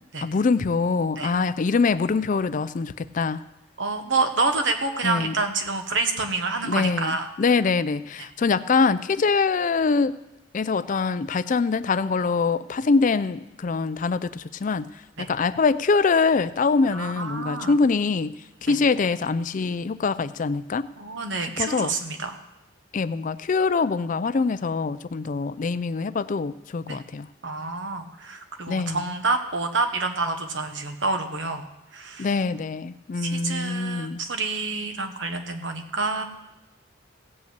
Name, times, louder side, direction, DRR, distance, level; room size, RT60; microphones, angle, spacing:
voice 1, 0.2-3.4 5.0-5.3 6.6-10.1 10.5-20.9 21.6-21.9 22.9-27.3 28.7-29.0 32.2-34.2, left 4 dB, 40° left, 15 dB, 0.4 m, -24 dB
voice 2, 3.8-7.3 15.2-15.3 16.9-17.7 18.7-18.8 21.0-22.4 26.9-27.0 27.4-31.7 31.9-32.3 33.2-36.2, right 3 dB, 70° right, 6 dB, 1.3 m, -28 dB
16.5 x 5.5 x 8.1 m, 0.95 s
head